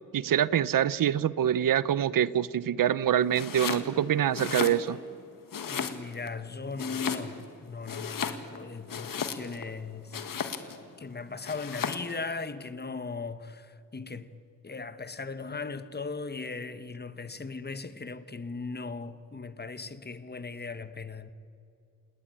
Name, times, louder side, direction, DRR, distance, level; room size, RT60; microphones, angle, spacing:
voice 1, 0.1-5.0, right 10 dB, 90° right, 0.7 m, -25 dB
Domestic sounds home sounds, 3.3-3.9 4.3-5.2 5.5-6.3 6.8-7.5 7.8-9.7 10.1-10.8 11.5-12.1, left 7 dB, 90° left, 1.8 m, -35 dB
voice 2, 5.7-10.3 11.0-14.3 14.6-21.3, left 4 dB, 30° left, 1.3 m, -38 dB
28.5 x 19.0 x 9.0 m
wide cardioid pair, 105°, 32 cm